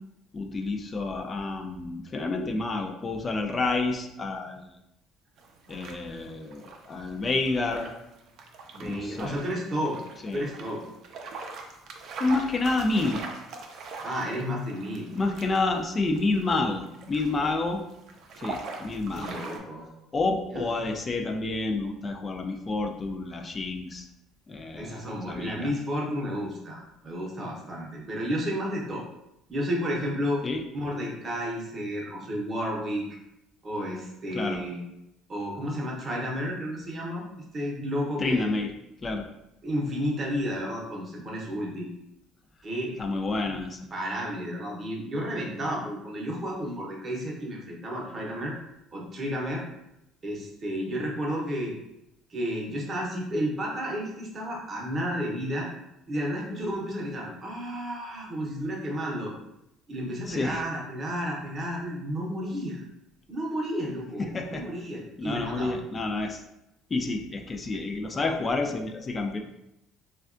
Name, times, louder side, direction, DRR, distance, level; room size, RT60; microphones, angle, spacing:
voice 1, 0.3-4.8 5.7-7.9 8.8-9.4 10.2-10.5 12.2-13.2 15.1-17.8 18.4-19.4 20.1-24.1 24.5-25.7 30.4-30.6 34.3-34.6 38.2-38.7 39.0-39.3 43.0-43.9 60.3-60.6 64.2-64.7 65.2-66.4 66.9-69.4, left 3 dB, 25° left, 5 dB, 0.3 m, -29 dB
sound 1, 5.4-19.6, right 3 dB, 55° right, 0.4 m, -42 dB
voice 2, 8.7-10.0 10.3-10.8 14.0-15.1 19.1-19.9 20.5-20.7 24.8-29.0 29.5-30.4 30.7-33.1 33.6-34.8 35.3-37.2 37.5-38.5 39.6-41.9 42.6-42.9 43.9-48.5 48.9-49.6 50.2-51.7 52.3-55.7 56.1-59.3 59.9-62.8 63.3-65.7, equal, 30° right, -2 dB, 0.7 m, -32 dB
3.4 x 2.2 x 2.4 m, 0.87 s
cardioid pair, 130°, 0 cm